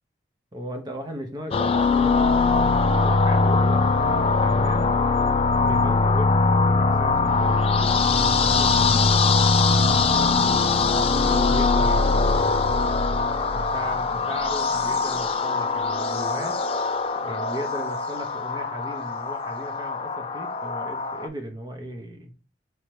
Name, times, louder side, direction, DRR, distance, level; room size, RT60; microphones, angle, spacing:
voice 1, 0.5-5.0 5.6-9.1 10.9-12.6 13.5-16.6 17.2-22.3, right 1 dB, 25° right, 0.7 m, -36 dB
sound 1, 1.5-21.3, left 4 dB, 30° left, 0.3 m, -21 dB
4.5 x 2.8 x 3.1 m
head